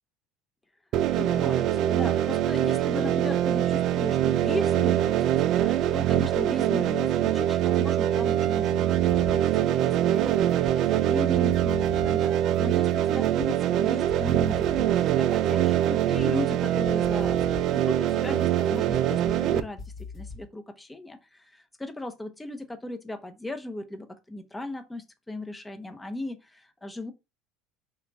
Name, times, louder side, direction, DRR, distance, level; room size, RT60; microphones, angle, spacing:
sound 1, 0.9-19.6, right 11 dB, 55° right, 0.3 m, -24 dB
voice 1, 1.2-19.8 20.1-27.1, left 2 dB, 10° left, 0.7 m, -37 dB
sound 2, 8.9-9.8 10.1-11.0 11.3-13.7 14.1-16.5 16.9-20.5, left 4 dB, 45° left, 0.9 m, -42 dB
3.4 x 2.9 x 2.5 m
hypercardioid pair, 80°, 0 cm